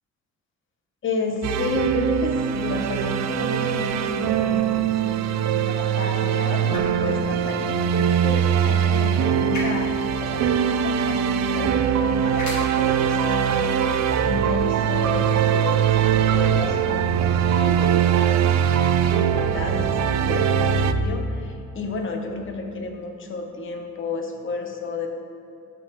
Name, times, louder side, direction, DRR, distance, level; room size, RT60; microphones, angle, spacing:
voice 1, 1.0-9.9 10.2-18.4 19.1-25.1, left 3 dB, 40° left, 3 dB, 0.9 m, -32 dB
sound 1, 1.4-20.9, right 8 dB, 60° right, 0.4 m, -22 dB
sound 2, 3.9-16.0, left 1 dB, 70° left, 2.0 m, -43 dB
13.5 x 6.1 x 3.0 m, 2.6 s
cardioid pair, 170°, 30 cm